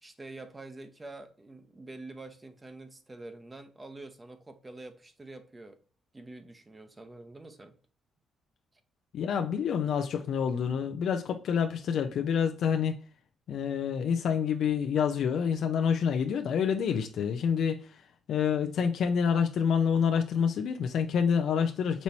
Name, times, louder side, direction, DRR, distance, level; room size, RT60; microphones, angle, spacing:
voice 1, 0.0-5.8 6.1-7.8, right 2 dB, 20° right, 0.8 m, -46 dB
voice 2, 9.1-13.0 13.5-18.0 18.3-22.0, left 7 dB, 70° left, 0.5 m, -27 dB
5.3 x 3.0 x 2.7 m
cardioid pair, 90°, 0 cm